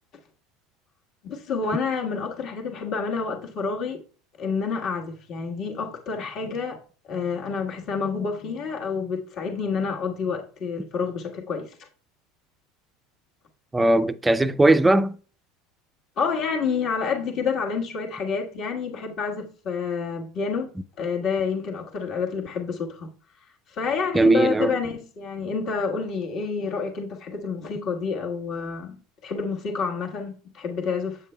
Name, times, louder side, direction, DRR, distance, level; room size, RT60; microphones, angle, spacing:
voice 1, 1.2-4.0 4.4-11.9 16.2-20.7 21.0-23.1 23.7-31.2, left 5 dB, 50° left, 1.5 m, -28 dB
voice 2, 13.7-15.2 24.1-24.8, right 2 dB, 10° right, 0.4 m, -19 dB
7.9 x 7.2 x 2.2 m
supercardioid pair, 115°, 0 cm